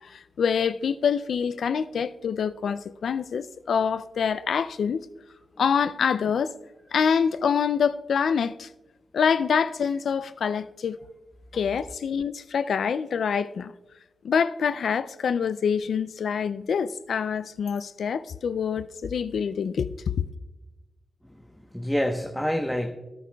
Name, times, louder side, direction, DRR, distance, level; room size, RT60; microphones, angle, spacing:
voice 1, 0.0-5.0 5.6-6.5 6.9-8.7 9.1-11.0 11.5-13.7 14.2-20.2, left 6 dB, 80° left, 0.3 m, -26 dB
voice 2, 21.2-22.9, equal, 5° left, 1.0 m, -28 dB
17.0 x 9.9 x 2.3 m
cardioid pair, 45°, 0 cm